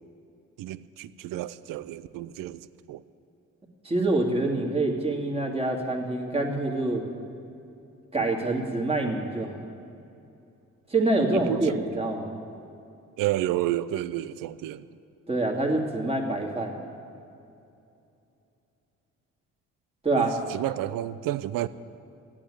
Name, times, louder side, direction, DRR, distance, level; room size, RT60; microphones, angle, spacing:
voice 1, 0.6-3.0 11.3-11.8 13.2-14.9 20.1-21.7, right 14 dB, 85° right, 16 dB, 0.6 m, -31 dB
voice 2, 3.8-7.0 8.1-9.6 10.9-12.4 15.3-16.8 20.0-20.3, right 2 dB, 20° right, 1 dB, 2.3 m, -26 dB
13.0 x 8.8 x 9.9 m, 2.7 s
cardioid pair, 90°, 33 cm